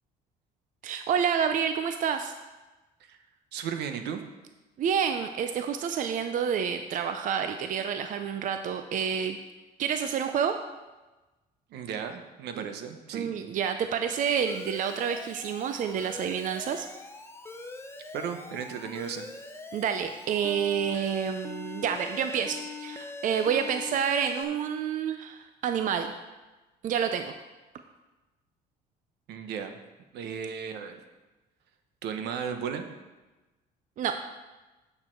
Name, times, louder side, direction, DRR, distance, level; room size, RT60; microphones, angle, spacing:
voice 1, 0.8-2.3 4.8-9.4 9.8-10.6 12.5-12.7 13.1-16.9 19.7-26.1 26.8-27.3 34.0-34.1, right 7 dB, 50° right, 7 dB, 0.6 m, -29 dB
voice 2, 3.5-4.2 11.7-13.3 18.1-19.3 29.3-29.8 30.1-31.0 32.0-32.9, right 7 dB, 80° right, 7 dB, 0.9 m, -35 dB
Alarm, 14.5-24.4, left 3 dB, 15° left, 0.7 m, -42 dB
8.6 x 6.6 x 4.5 m, 1.1 s
cardioid pair, 110°, 17 cm